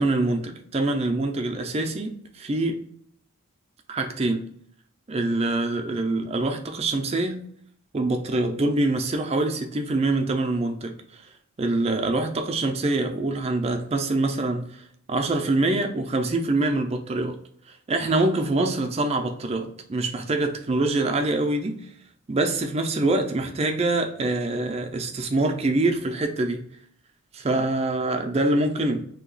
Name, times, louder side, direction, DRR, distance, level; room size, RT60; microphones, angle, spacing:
voice 1, 0.0-2.8 3.9-4.5 5.1-7.4 7.9-11.3 11.6-17.4 17.7-21.8 22.3-26.6 27.3-29.0, right 2 dB, 30° right, 4 dB, 0.4 m, -25 dB
2.8 x 2.3 x 3.8 m, 0.65 s
head